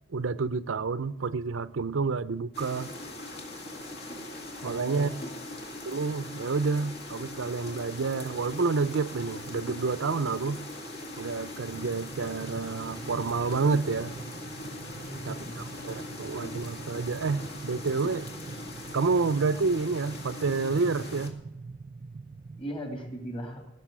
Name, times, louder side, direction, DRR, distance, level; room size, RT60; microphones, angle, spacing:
voice 1, 0.1-2.9 4.6-5.1 5.9-10.6 11.2-14.1 15.3-15.4 15.8-18.3 18.9-21.4, right 4 dB, 85° right, 0.6 m, -29 dB
sound 1, 2.5-21.3, left 1 dB, 60° left, 2.2 m, -41 dB
voice 2, 4.6-5.5 15.0-15.6 22.6-23.7, equal, 30° left, 3.1 m, -39 dB
sound 2, 11.1-11.4 11.8-12.4 12.7-12.8 13.1-19.3, equal, 90° left, 2.2 m, -56 dB
sound 3, 11.7-22.6, right 4 dB, 40° right, 0.4 m, -44 dB
16.0 x 6.9 x 9.5 m
head